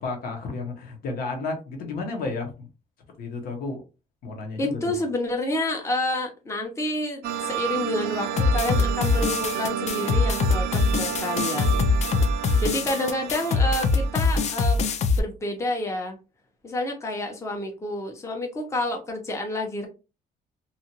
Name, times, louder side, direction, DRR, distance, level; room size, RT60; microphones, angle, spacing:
voice 1, 0.0-2.5 3.2-3.8 4.2-5.0, left 3 dB, 70° left, 3 dB, 1.0 m, -32 dB
voice 2, 4.6-11.8 12.6-14.8 15.2-16.2 16.6-19.9, left 1 dB, 20° left, 2 dB, 0.7 m, -29 dB
sound 1, 7.2-15.0, right 10 dB, 85° right, 0.5 m, -32 dB
sound 2, 8.4-15.2, left 4 dB, 45° left, 0.4 m, -23 dB
2.8 x 2.5 x 2.8 m, 0.30 s
cardioid pair, 120°, 16 cm